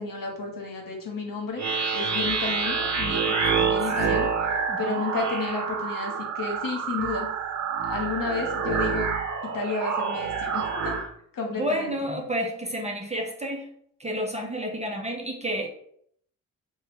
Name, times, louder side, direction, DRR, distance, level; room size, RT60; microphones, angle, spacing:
voice 1, 0.0-1.6 1.9-4.3 4.8-7.3 7.9-9.1 9.5-10.9 11.3-11.9, left 4 dB, 55° left, 1 dB, 1.2 m, -31 dB
sound 1, 1.6-11.1, right 5 dB, 45° right, 0.8 m, -27 dB
voice 2, 3.5-4.2 4.7-5.0 11.5-13.7 14.0-15.7, equal, 15° right, 1 dB, 0.6 m, -31 dB
2.7 x 2.2 x 3.5 m, 0.67 s
supercardioid pair, 50°, 39 cm